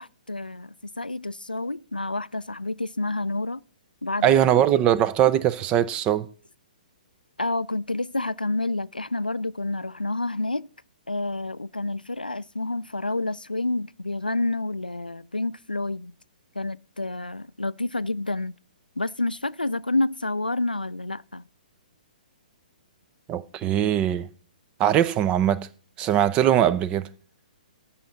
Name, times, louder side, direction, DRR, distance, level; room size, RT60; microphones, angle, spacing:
voice 1, 0.0-3.6 4.0-4.4 4.7-4.9 7.4-10.7 11.1-16.1 16.6-18.6 19.0-21.4, left 2 dB, 90° left, 0.3 m, -29 dB
voice 2, 4.2-6.3 23.3-24.3 24.8-25.7 26.0-27.1, right 11 dB, 20° right, 0.5 m, -21 dB
14.0 x 5.8 x 3.9 m
figure-of-eight pair, 125°, 5 cm